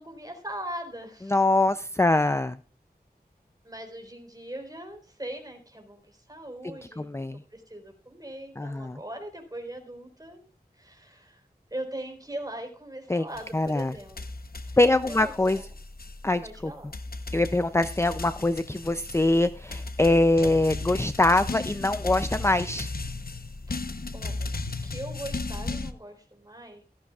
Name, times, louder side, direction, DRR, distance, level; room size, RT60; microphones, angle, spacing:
voice 1, 0.0-1.4 2.0-2.3 3.6-7.2 7.5-10.4 10.7-11.4 11.7-14.2 14.7-15.7 16.4-16.9 24.1-24.5 24.8-26.8, right 1 dB, 25° right, 3 dB, 4.2 m, -40 dB
voice 2, 1.3-2.6 7.0-7.4 8.6-9.0 13.1-13.3 13.5-13.9 14.8-15.6 16.2-16.7 17.3-22.9, left 2 dB, 15° left, 11 dB, 0.5 m, -23 dB
sound 1, 13.3-25.9, left 3 dB, 65° left, 1.0 m, -36 dB
17.0 x 14.0 x 2.4 m, 0.39 s
wide cardioid pair, 60°, 17 cm